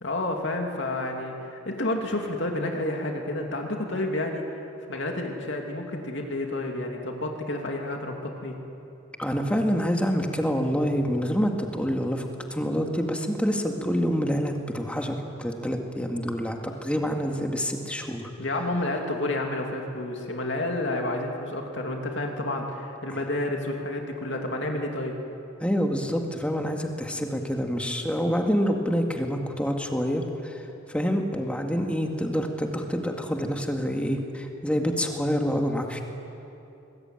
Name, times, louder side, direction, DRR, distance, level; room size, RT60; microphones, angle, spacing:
voice 1, 0.0-4.4 4.9-8.6 18.4-25.2, left 1 dB, 65° left, 2 dB, 2.8 m, -30 dB
voice 2, 9.2-18.3 23.1-23.2 25.6-36.0, equal, 5° left, 3 dB, 2.0 m, -27 dB
23.5 x 20.5 x 9.1 m, 2.9 s
head